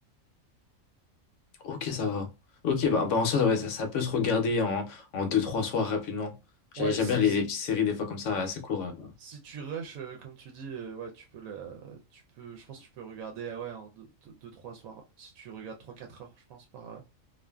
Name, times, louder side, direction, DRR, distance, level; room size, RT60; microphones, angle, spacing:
voice 1, 1.6-2.3 2.6-6.3 6.7-9.1, left 5 dB, 70° left, 0.9 m, -28 dB
voice 2, 6.8-7.4 9.2-17.0, right 6 dB, 90° right, 1.0 m, -42 dB
2.4 x 2.4 x 2.2 m
omnidirectional pair, 1.4 m